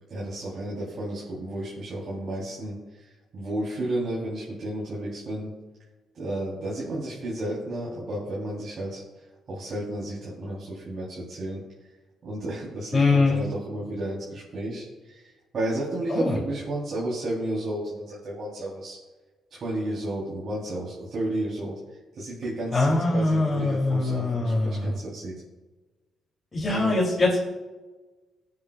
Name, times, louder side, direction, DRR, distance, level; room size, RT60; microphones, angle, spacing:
voice 1, 0.1-5.5 6.1-11.6 12.2-19.0 19.5-25.4 26.7-27.0, right 1 dB, 55° right, -6 dB, 3.8 m, -32 dB
voice 2, 12.9-13.4 16.1-16.4 22.7-24.9 26.5-27.4, left 3 dB, 25° left, -6 dB, 3.2 m, -23 dB
22.0 x 8.7 x 2.5 m, 1.2 s
cardioid pair, 90°, 0 cm